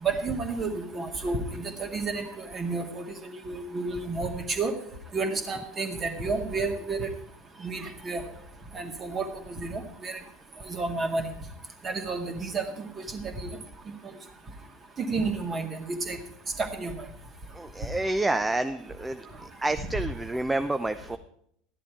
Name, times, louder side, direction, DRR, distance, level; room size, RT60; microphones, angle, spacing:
voice 1, 0.0-4.7 5.1-7.1 7.6-8.2 8.7-10.2 10.7-11.3 11.8-12.7 13.1-13.5 15.0-16.2 16.6-16.9, right 3 dB, 25° right, 5 dB, 2.0 m, -31 dB
voice 2, 17.5-19.3 19.6-21.2, right 2 dB, 10° right, 10 dB, 0.6 m, -28 dB
13.5 x 11.0 x 4.7 m, 0.69 s
figure-of-eight pair, 75°, 0 cm